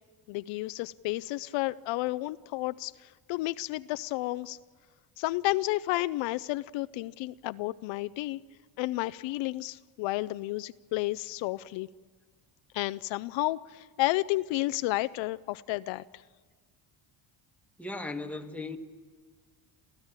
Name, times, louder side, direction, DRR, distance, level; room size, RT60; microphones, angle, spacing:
voice 1, 0.3-4.6 5.2-8.4 8.8-11.9 12.7-16.0, left 18 dB, 75° left, 0.6 m, -31 dB
voice 2, 17.8-18.8, left 2 dB, 5° left, 1.4 m, -37 dB
29.5 x 14.0 x 8.9 m
cardioid pair, 115°, 45 cm